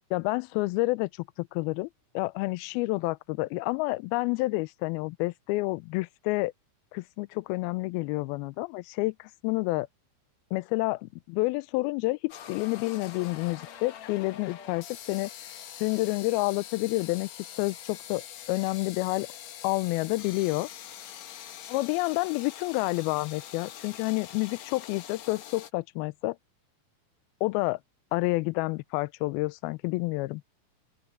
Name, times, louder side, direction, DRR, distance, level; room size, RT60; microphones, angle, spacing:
voice 1, 0.1-1.9 2.1-6.5 6.9-9.9 10.5-15.3 15.8-17.3 17.6-19.3 19.6-20.7 21.7-26.4 27.4-27.8 28.1-30.4, left 22 dB, 80° left, 2.3 m, -29 dB
sound 1, 12.3-25.7, left 10 dB, 65° left, 1.8 m, -44 dB
open air
omnidirectional pair, 4.8 m